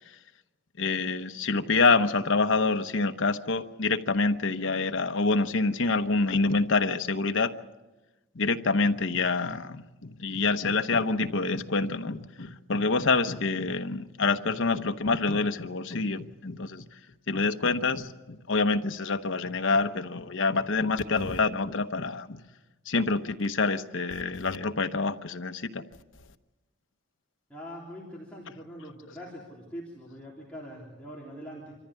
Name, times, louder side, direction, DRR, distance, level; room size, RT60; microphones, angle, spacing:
voice 1, 0.8-7.5 8.3-17.0 17.3-22.4 22.9-25.8, left 3 dB, 70° left, 9 dB, 1.0 m, -27 dB
voice 2, 27.5-31.7, equal, 5° left, -6 dB, 3.5 m, -43 dB
26.0 x 14.5 x 8.4 m, 1.1 s
head